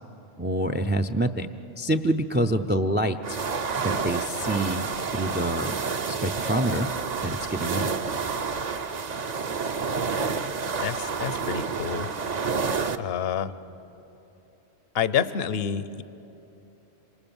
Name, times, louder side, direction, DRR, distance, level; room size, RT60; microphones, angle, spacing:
voice 1, 0.4-1.5 1.8-3.4 3.7-4.9 5.1-5.8 6.1-6.9 7.2-7.9, right 1 dB, 15° right, 10 dB, 0.4 m, -26 dB
sound 1, 3.2-13.0, right 5 dB, 45° right, 0.8 m, -29 dB
voice 2, 10.8-12.1 13.0-13.5 14.9-16.0, left 8 dB, 65° left, 15 dB, 1.0 m, -28 dB
27.5 x 25.5 x 7.1 m, 2.9 s
omnidirectional pair, 1.1 m